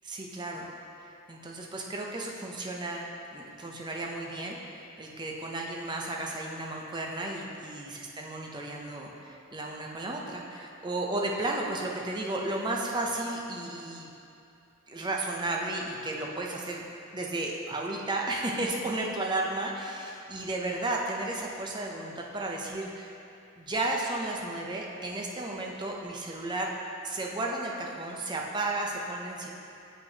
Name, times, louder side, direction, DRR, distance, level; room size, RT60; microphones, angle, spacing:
voice 1, 0.0-0.7 1.3-3.1 3.3-14.1 14.9-16.8 17.1-23.1 23.6-26.7 27.0-29.5, right 2 dB, 20° right, -1 dB, 0.5 m, -33 dB
7.6 x 5.3 x 2.8 m, 2.7 s
head